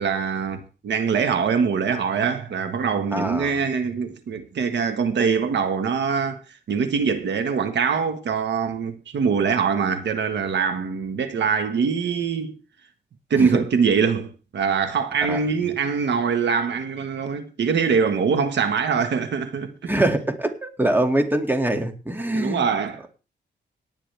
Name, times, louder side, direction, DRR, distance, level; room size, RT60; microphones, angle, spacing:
voice 1, 0.0-6.4 6.7-12.6 13.3-19.9 22.3-23.0, right 6 dB, 75° right, 1.5 m, -23 dB
voice 2, 3.1-3.6 13.3-13.6 15.3-15.4 19.9-22.6, right 1 dB, 10° right, 2.2 m, -23 dB
18.0 x 9.8 x 3.4 m
wide cardioid pair, 115°, 18 cm